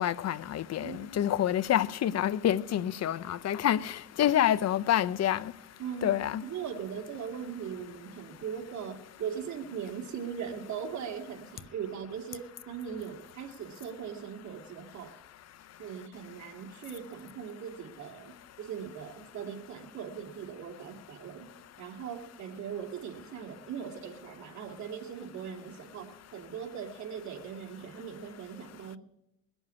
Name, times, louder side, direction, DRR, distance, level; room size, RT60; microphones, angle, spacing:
voice 1, 0.0-3.9 4.2-5.4 6.0-6.4, left 11 dB, 60° left, 0.7 m, -27 dB
voice 2, 0.8-1.2 5.8-6.2 6.4-15.1 15.8-21.5 21.8-29.0, right 7 dB, 70° right, 2.5 m, -40 dB
20.5 x 7.1 x 8.4 m
cardioid pair, 90°, 30 cm